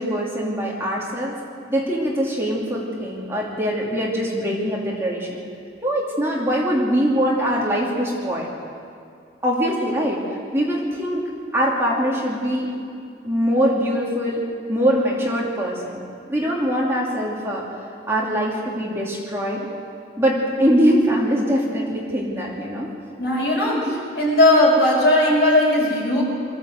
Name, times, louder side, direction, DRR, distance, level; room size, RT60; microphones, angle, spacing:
voice 1, 0.0-1.4 1.7-5.4 5.8-8.5 9.4-12.7 13.2-14.4 14.7-16.0 16.3-17.7 18.1-19.7 20.2-22.9, equal, 15° right, -4 dB, 2.7 m, -22 dB
voice 2, 23.2-26.2, left 1 dB, 65° left, -3 dB, 6.5 m, -18 dB
23.0 x 14.5 x 7.9 m, 2.4 s
head